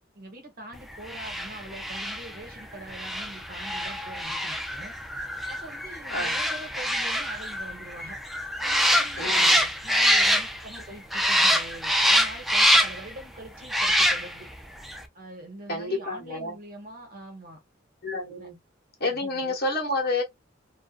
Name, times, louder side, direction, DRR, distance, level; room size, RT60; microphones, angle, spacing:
voice 1, 0.1-4.9 5.5-8.2 8.6-14.5 15.1-17.6 18.3-18.5 19.1-19.5, right 1 dB, 50° right, 1.0 m, -44 dB
sound 1, 1.0-10.8 11.1-13.1 13.6-14.5 14.8-15.0, equal, ahead, 0.3 m, -25 dB
voice 2, 9.2-9.7 15.7-16.6 18.0-18.6 19.0-20.2, left 2 dB, 55° left, 1.1 m, -29 dB
2.5 x 2.3 x 2.3 m
head